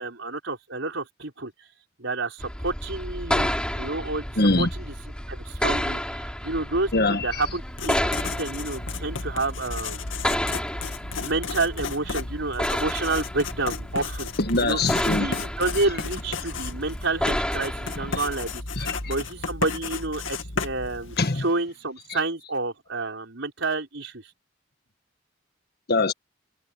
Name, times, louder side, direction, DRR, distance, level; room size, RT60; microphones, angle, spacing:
voice 1, 0.0-1.5 2.0-4.9 5.3-10.1 11.2-14.3 14.6-14.8 15.1-24.2, right 3 dB, 70° right, 5.6 m, -29 dB
sound 1, 2.4-18.6, left 1 dB, 5° left, 4.2 m, -31 dB
voice 2, 4.4-4.7 6.9-7.4 14.5-15.3 18.8-19.1 21.2-21.4 22.1-22.2 25.9-26.1, left 2 dB, 55° left, 1.7 m, -23 dB
Writing, 7.6-21.5, left 4 dB, 85° left, 2.2 m, -34 dB
head